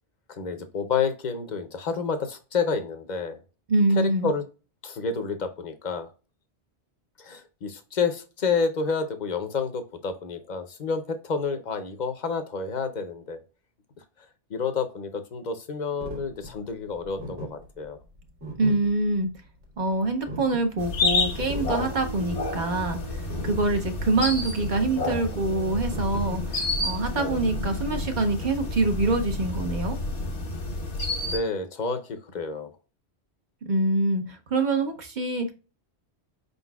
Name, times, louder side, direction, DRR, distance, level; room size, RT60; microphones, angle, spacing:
voice 1, 0.3-3.4 4.0-4.4 4.8-6.1 7.2-13.4 14.5-18.0 31.3-32.7, left 5 dB, 50° left, 8 dB, 0.6 m, -29 dB
voice 2, 3.7-4.3 18.6-19.3 19.8-23.0 23.4-30.0 33.7-35.5, right 2 dB, 50° right, 5 dB, 0.8 m, -25 dB
sound 1, 16.0-27.0, equal, 80° right, 1.8 m, -39 dB
sound 2, 20.8-31.4, left 2 dB, 90° left, 1.5 m, -30 dB
4.9 x 3.9 x 2.2 m, 0.33 s
omnidirectional pair, 1.1 m